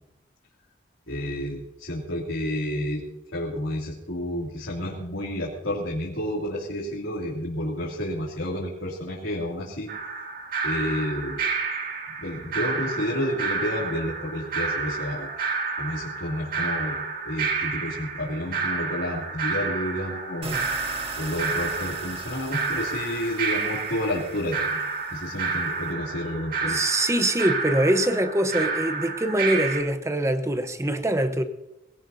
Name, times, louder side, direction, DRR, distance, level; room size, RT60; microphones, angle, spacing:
voice 1, 1.1-3.0 3.3-9.9 10.6-11.4 12.2-15.3 15.8-17.0 17.2-20.6 20.8-24.7 25.1-26.8, left 1 dB, 65° left, -4 dB, 2.7 m, -30 dB
sound 1, 9.9-29.8, right 4 dB, 50° right, 2.1 m, -30 dB
sound 2, 20.4-25.9, right 4 dB, 30° right, 1.7 m, -41 dB
voice 2, 26.6-31.4, right 1 dB, 15° right, 9 dB, 0.9 m, -24 dB
21.0 x 17.5 x 2.7 m, 0.89 s
head